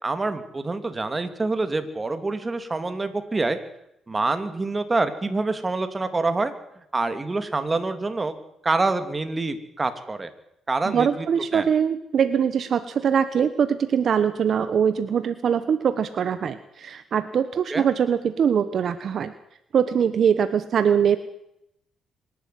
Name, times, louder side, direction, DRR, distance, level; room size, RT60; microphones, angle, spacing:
voice 1, 0.0-3.6 4.1-6.5 6.9-8.4 8.6-10.3 10.7-11.3 11.5-11.7 17.7-17.9, right 3 dB, 25° right, 9 dB, 2.7 m, -26 dB
voice 2, 10.9-19.3 19.7-21.2, right 7 dB, 55° right, 11 dB, 1.2 m, -22 dB
25.0 x 12.0 x 9.5 m, 0.79 s
cardioid pair, 90°, 0 cm